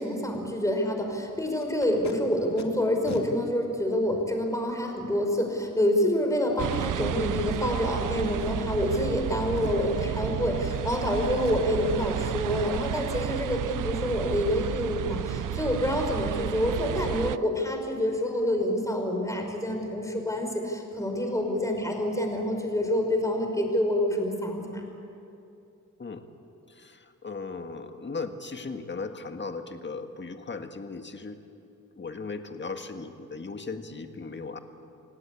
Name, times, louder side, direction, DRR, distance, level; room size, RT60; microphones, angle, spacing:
voice 1, 0.0-24.8, left 1 dB, 10° left, 3 dB, 5.1 m, -27 dB
Packing tape duct tape, 1.6-2.1 2.6-2.7 3.0-3.2 4.0-4.1 7.5-7.9 8.4-8.5 8.9-9.2 9.5-9.9 10.6-11.1 11.4-11.8 12.2-12.4 12.7-13.0 16.1-16.2 16.5-16.7 17.0-17.2 17.4-17.7 18.0-18.1, left 6 dB, 60° left, 2.5 m, -44 dB
sound 1, 6.6-17.4, right 11 dB, 80° right, 0.6 m, -32 dB
voice 2, 26.7-31.4 32.0-34.6, left 4 dB, 35° left, 6 dB, 1.8 m, -37 dB
28.5 x 18.0 x 8.5 m, 2.7 s
wide cardioid pair, 95°, 31 cm